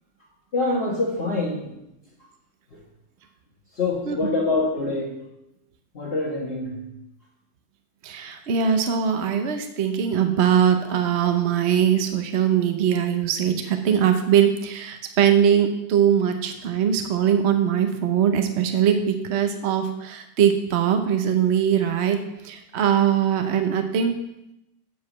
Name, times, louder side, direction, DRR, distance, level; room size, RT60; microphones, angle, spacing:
voice 1, 0.5-1.7 2.7-2.8 3.7-5.1 5.9-6.8, left 2 dB, 40° left, -6 dB, 1.5 m, -25 dB
voice 2, 8.0-22.2 22.4-24.1, right 8 dB, 55° right, 6 dB, 0.9 m, -21 dB
7.5 x 4.7 x 7.1 m, 0.88 s
omnidirectional pair, 1.7 m